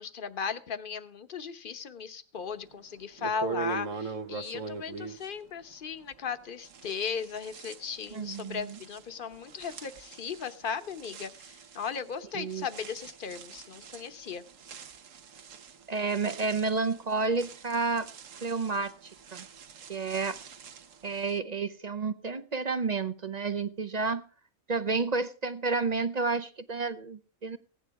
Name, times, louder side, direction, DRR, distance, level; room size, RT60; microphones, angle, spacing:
voice 1, 0.0-14.4, left 6 dB, 45° left, 11 dB, 1.1 m, -37 dB
sound 1, 2.7-2.8 3.2-6.3 6.6-21.4, right 5 dB, 70° right, 1.4 m, -43 dB
voice 2, 8.1-8.8 12.3-12.7 15.9-18.1 18.4-19.4 19.9-20.4 21.0-24.2 24.7-27.6, right 4 dB, 40° right, 12 dB, 0.7 m, -30 dB
16.5 x 10.0 x 4.7 m, 0.39 s
omnidirectional pair, 1.4 m